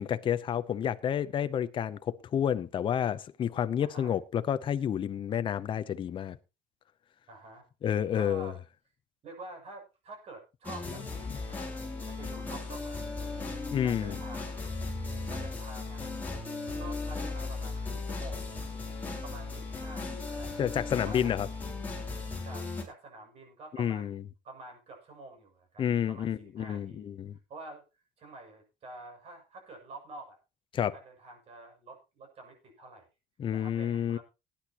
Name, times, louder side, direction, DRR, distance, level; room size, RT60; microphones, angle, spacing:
voice 1, 0.0-6.4 7.8-8.5 13.7-14.2 20.6-21.5 23.8-24.2 25.8-27.4 30.7-31.0 33.4-34.2, left 9 dB, 35° left, 0.6 m, -30 dB
voice 2, 3.8-4.2 7.3-7.7 8.1-8.6 9.2-13.5 13.8-14.8 15.3-16.0 16.8-18.5 18.8-20.5 20.9-21.3 22.4-24.1 24.4-27.1 27.5-27.8 28.2-30.4 30.9-33.1 33.5-34.2, right 2 dB, 45° right, 6.7 m, -48 dB
sound 1, 10.6-22.8, left 3 dB, 10° left, 4.2 m, -37 dB
18.5 x 10.0 x 2.9 m
cardioid pair, 135°, 14 cm